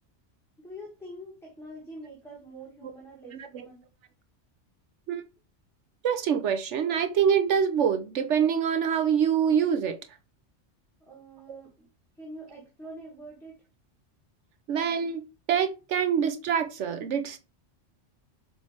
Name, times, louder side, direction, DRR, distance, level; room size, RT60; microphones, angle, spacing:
voice 1, 0.6-3.8 11.0-11.9 12.2-13.6, right 1 dB, ahead, 1.5 m, -45 dB
voice 2, 3.3-3.7 5.1-5.2 6.0-10.0 11.5-11.6 14.7-15.2 15.5-17.4, right 8 dB, 75° right, 1.0 m, -25 dB
7.4 x 3.4 x 4.3 m
omnidirectional pair, 1.2 m